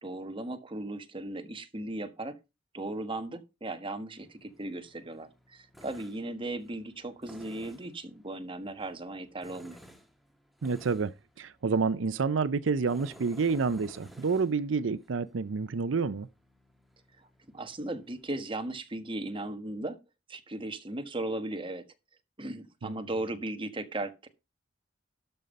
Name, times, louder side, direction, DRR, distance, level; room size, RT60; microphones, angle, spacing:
voice 1, 0.0-2.4 2.7-9.8 17.2-17.3 17.5-20.0 20.3-21.8 22.4-24.3, right 2 dB, 25° right, 1.3 m, -37 dB
Tools, 4.2-18.3, equal, ahead, 1.4 m, -56 dB
voice 2, 10.6-16.3 22.8-22.9, right 4 dB, 85° right, 0.5 m, -29 dB
12.5 x 5.4 x 5.2 m
head